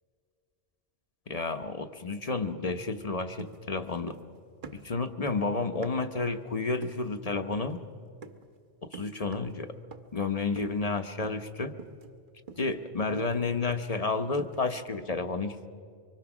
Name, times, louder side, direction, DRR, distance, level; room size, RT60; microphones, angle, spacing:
voice 1, 1.3-4.2 4.7-7.8 8.8-9.7 10.1-11.8 12.6-15.7, left 3 dB, 35° left, 8 dB, 0.8 m, -31 dB
sound 1, 3.4-4.4 4.6-6.2 6.8-7.1 7.5-7.8 8.2-8.5 8.9-9.6 9.9-10.2 10.6-10.9 11.2-11.5 11.8-14.0 14.4-14.7, right 5 dB, 45° right, 1.1 m, -47 dB
24.5 x 24.5 x 6.1 m, 2.3 s
omnidirectional pair, 1.2 m